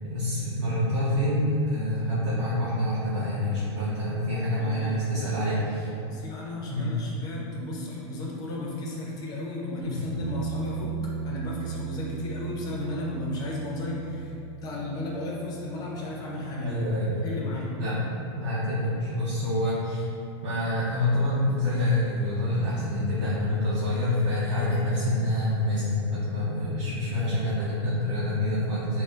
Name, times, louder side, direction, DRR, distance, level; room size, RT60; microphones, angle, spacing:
voice 1, 0.0-5.9 6.7-7.0 9.8-10.0 16.6-17.2 17.8-18.0 18.4-20.1 20.4-29.0, left 1 dB, 80° right, -10 dB, 0.7 m, -27 dB
voice 2, 4.6-5.7 6.0-10.9 11.2-14.3 14.6-16.8 17.2-17.8, left 2 dB, 25° left, -3 dB, 0.5 m, -34 dB
sound 1, 10.1-17.7 20.8-20.9, right 6 dB, 60° right, 1.5 m, -37 dB
4.2 x 2.0 x 2.4 m, 2.6 s
supercardioid pair, 150°, 15 cm